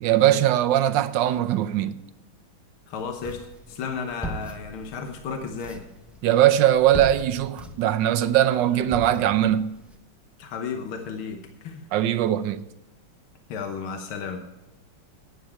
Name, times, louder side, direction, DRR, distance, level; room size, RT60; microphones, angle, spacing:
voice 1, 0.0-2.0 6.2-9.7 11.9-12.7, right 12 dB, 75° right, 1.2 m, -21 dB
voice 2, 2.9-3.4 3.7-5.8 10.4-11.9 13.5-14.4, left 5 dB, 80° left, 1.9 m, -33 dB
sound 1, 2.9-9.9, equal, ahead, 0.4 m, -40 dB
12.0 x 9.3 x 4.4 m
omnidirectional pair, 2.2 m